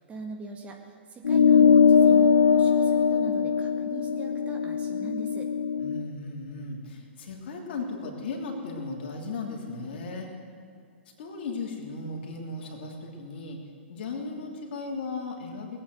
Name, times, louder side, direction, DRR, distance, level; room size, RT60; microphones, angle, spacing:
voice 1, 0.1-5.5, right 3 dB, 20° right, 2 dB, 1.8 m, -41 dB
sound 1, 1.2-6.0, left 6 dB, 80° left, 0.6 m, -21 dB
voice 2, 5.8-10.3 11.2-13.6 13.9-15.8, left 3 dB, 55° left, 0 dB, 3.1 m, -36 dB
19.0 x 8.8 x 7.9 m, 2.5 s
hypercardioid pair, 115°, 6 cm